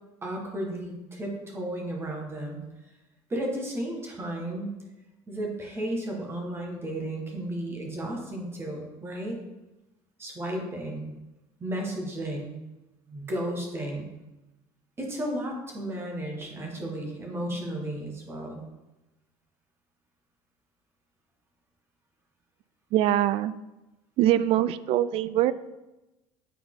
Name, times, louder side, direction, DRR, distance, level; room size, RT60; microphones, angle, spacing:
voice 1, 0.2-2.6 3.3-4.8 5.3-9.4 10.2-11.1 11.6-12.5 13.1-14.1 15.0-18.6, right 1 dB, 20° right, 1 dB, 1.6 m, -33 dB
voice 2, 22.9-23.5 24.2-25.5, right 13 dB, 60° right, 15 dB, 0.4 m, -23 dB
8.3 x 4.4 x 3.8 m, 1.0 s
cardioid pair, 135°, 11 cm